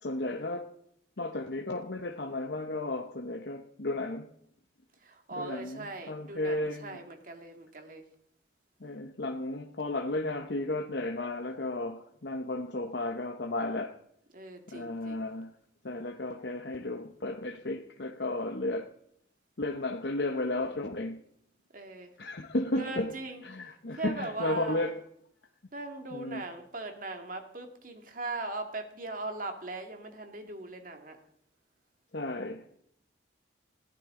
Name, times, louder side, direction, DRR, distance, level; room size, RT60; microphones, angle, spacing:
voice 1, 0.0-0.7 1.2-4.3 5.4-7.0 8.8-14.0 14.7-15.5 15.8-18.9 19.6-21.2 22.2-23.1 23.4-24.9 26.1-26.4 32.1-32.8, left 2 dB, 60° left, 0.9 m, -34 dB
voice 2, 5.0-8.1 14.3-15.3 21.7-22.2 22.7-23.4 23.9-24.8 25.7-31.2, right 2 dB, 45° right, 2.1 m, -39 dB
20.5 x 15.5 x 3.8 m
head